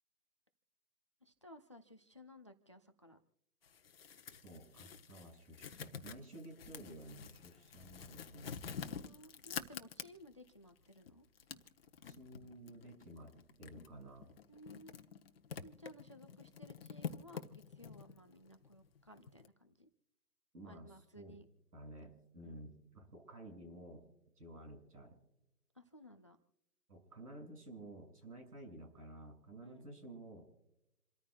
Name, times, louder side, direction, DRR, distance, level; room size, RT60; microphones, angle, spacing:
voice 1, 1.2-3.2 9.0-11.3 14.5-14.9 15.6-19.9 20.6-21.5 22.1-22.7 25.7-26.4 29.6-29.8, left 1 dB, 20° left, 9 dB, 0.5 m, -57 dB
sound 1, 3.6-10.5 10.9-19.5, left 7 dB, 40° left, 1.0 m, -48 dB
voice 2, 4.4-8.6 12.0-13.3 13.6-14.3 20.5-21.4 21.7-24.0 24.4-25.2 26.9-30.4, right 1 dB, 75° right, 3 dB, 6.5 m, -53 dB
28.0 x 14.0 x 2.3 m, 0.87 s
figure-of-eight pair, 145°, 46 cm